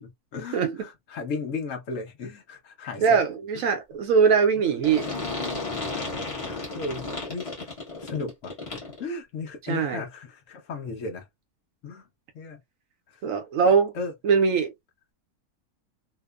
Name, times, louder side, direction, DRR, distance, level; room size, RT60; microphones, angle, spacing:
voice 1, 0.0-3.2 3.5-3.7 4.6-4.7 5.9-7.7 8.0-11.3 11.8-12.1 12.3-12.6 13.1-13.2 13.7-14.1, left 4 dB, 65° left, 1.0 m, -36 dB
voice 2, 3.0-5.1 9.7-10.0 13.2-13.9 14.2-14.7, right 6 dB, 70° right, 0.9 m, -21 dB
sound 1, 4.8-9.0, left 3 dB, 25° left, 1.0 m, -33 dB
2.8 x 2.1 x 2.3 m
omnidirectional pair, 1.6 m